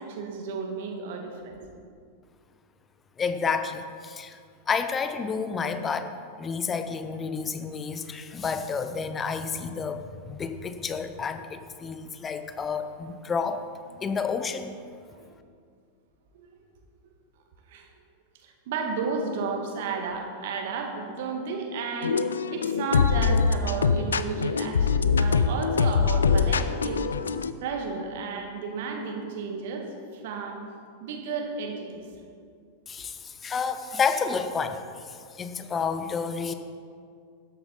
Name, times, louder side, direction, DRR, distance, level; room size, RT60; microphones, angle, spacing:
voice 1, 0.0-1.6 15.1-15.3 16.3-16.5 17.7-17.9 18.4-27.0 27.6-29.9 30.1-30.6 31.0-32.0, right 4 dB, 55° right, 2 dB, 1.8 m, -33 dB
voice 2, 3.2-4.4 4.7-6.1 6.4-13.6 14.0-14.7 32.9-34.8 35.1-36.5, left 5 dB, 20° left, 9 dB, 0.8 m, -30 dB
sound 1, 22.0-27.5, left 5 dB, 70° left, 0.4 m, -23 dB
13.0 x 10.5 x 4.0 m, 2.2 s
figure-of-eight pair, 90°, 0 cm